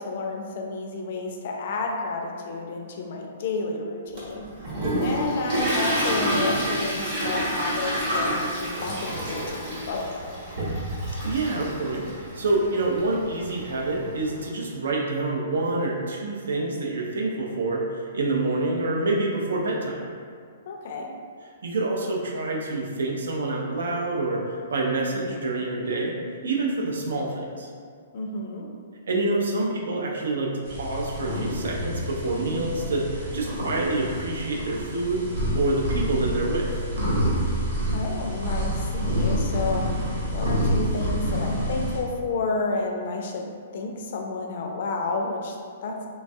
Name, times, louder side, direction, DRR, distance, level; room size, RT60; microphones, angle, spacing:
voice 1, 0.0-4.5 5.0-10.3 20.7-21.1 28.1-28.7 37.9-39.9 40.3-43.5 43.7-45.6 45.8-46.0, left 3 dB, 45° left, 1 dB, 0.3 m, -31 dB
Toilet flush, 4.2-14.4, equal, 35° right, 0.8 m, -29 dB
voice 2, 11.2-20.1 21.6-26.1 26.4-27.7 29.1-35.2 35.5-36.7, right 2 dB, 90° right, -1 dB, 0.5 m, -27 dB
sound 1, 30.6-42.0, equal, 70° right, 1.1 m, -27 dB
3.1 x 2.3 x 2.6 m, 2.1 s
hypercardioid pair, 170°, 0 cm